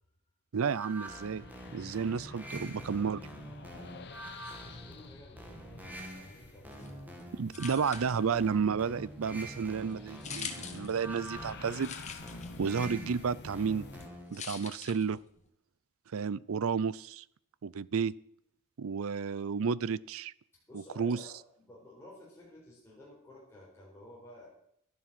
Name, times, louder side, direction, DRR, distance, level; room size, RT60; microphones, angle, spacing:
voice 1, 0.5-1.4 1.7-3.2 7.3-11.9 12.6-13.9 14.3-15.2 16.1-17.2 17.6-18.1 18.8-20.3 21.0-21.2, right 6 dB, 65° right, 21 dB, 0.5 m, -31 dB
sound 1, 0.6-14.4, right 1 dB, 10° right, 2.2 m, -46 dB
sound 2, 1.3-14.1, left 3 dB, 50° left, 1.0 m, -50 dB
voice 2, 4.4-7.0 20.7-24.5, left 1 dB, 10° left, -6 dB, 4.4 m, -53 dB
sound 3, 6.7-15.5, left 6 dB, 30° left, 1.6 m, -47 dB
12.5 x 11.0 x 6.0 m, 0.71 s
head